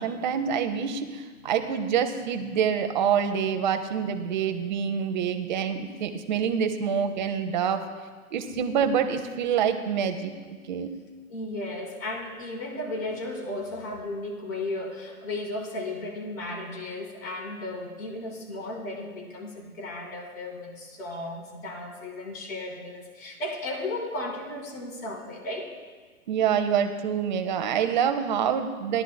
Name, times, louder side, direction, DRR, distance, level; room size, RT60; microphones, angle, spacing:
voice 1, 0.0-7.8 8.3-10.3 10.7-10.9 26.3-29.0, right 7 dB, 30° right, 7 dB, 0.7 m, -26 dB
voice 2, 11.3-25.7, left 2 dB, 65° left, -2 dB, 3.5 m, -35 dB
17.5 x 11.0 x 2.2 m, 1.5 s
figure-of-eight pair, 130°, 44 cm